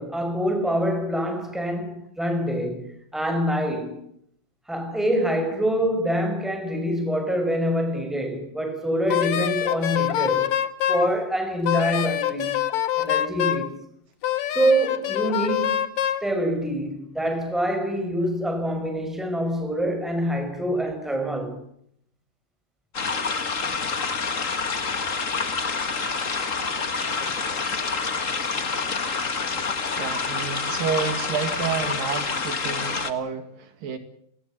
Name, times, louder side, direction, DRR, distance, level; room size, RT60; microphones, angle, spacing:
voice 1, 0.0-4.0 4.7-10.6 10.9-12.6 13.0-13.8 14.5-15.9 16.2-21.7, equal, ahead, 5.4 m, -25 dB
Wind instrument woodwind instrument, 9.1-11.1 11.6-13.7 14.2-16.2, left 11 dB, 60° left, 2.4 m, -25 dB
sound 1, 22.9-33.1, left 4 dB, 35° left, 1.2 m, -27 dB
voice 2, 30.0-34.0, right 6 dB, 70° right, 3.7 m, -30 dB
29.0 x 20.5 x 7.3 m
omnidirectional pair, 4.2 m